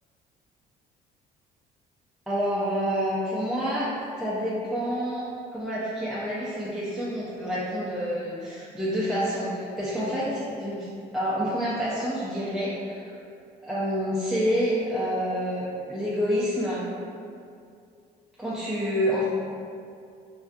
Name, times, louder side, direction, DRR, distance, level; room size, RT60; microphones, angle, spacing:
voice 1, 2.3-3.9 4.2-5.2 5.5-10.9 11.1-13.2 13.6-16.9 18.4-19.3, equal, ahead, -9 dB, 0.4 m, -28 dB
2.5 x 2.3 x 2.2 m, 2.4 s
cardioid pair, 110°, 17 cm